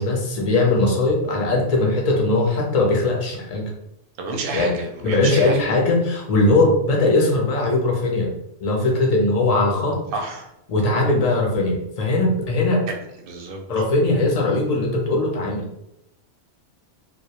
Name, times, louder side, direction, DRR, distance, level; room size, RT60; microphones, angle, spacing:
voice 1, 0.0-3.7 4.5-4.7 5.0-8.3 8.6-10.0 10.7-12.8 13.7-15.6, left 2 dB, 50° left, 0 dB, 0.5 m, -20 dB
voice 2, 4.2-5.6 10.1-10.5 13.2-13.6, right 3 dB, 60° right, 2 dB, 0.7 m, -29 dB
2.2 x 2.1 x 2.8 m, 0.83 s
omnidirectional pair, 1.2 m